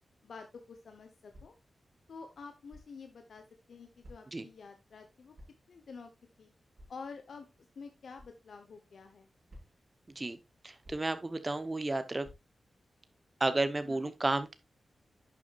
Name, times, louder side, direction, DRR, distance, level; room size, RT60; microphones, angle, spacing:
voice 1, 0.2-1.5 2.1-5.4 5.7-6.1 6.4-6.5 6.9-7.5 7.8-9.3 13.8-14.1, left 5 dB, 70° left, 1.0 m, -49 dB
sound 1, 1.3-1.7 2.7-3.0 4.0-4.5 5.3-5.7 6.8-7.1 8.2-8.4 9.5-9.9 10.8-11.3 12.2-12.6, equal, 45° right, 5.5 m, -55 dB
voice 2, 10.6-12.3 13.4-14.5, right 2 dB, 20° right, 0.9 m, -32 dB
11.0 x 7.0 x 2.5 m
wide cardioid pair, 165°, 0 cm